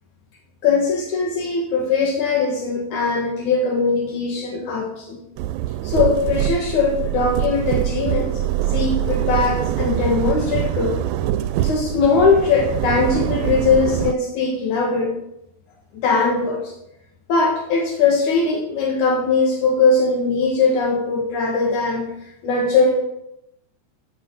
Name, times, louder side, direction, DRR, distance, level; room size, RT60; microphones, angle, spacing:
voice 1, 0.6-5.2 5.8-8.3 8.7-11.0 11.6-15.1 15.9-16.7 17.3-22.1 22.4-23.0, left 4 dB, 85° left, -1 dB, 3.1 m, -20 dB
sound 1, 5.4-14.1, right 13 dB, 80° right, 1.8 m, -24 dB
14.5 x 7.7 x 5.4 m, 0.80 s
omnidirectional pair, 3.3 m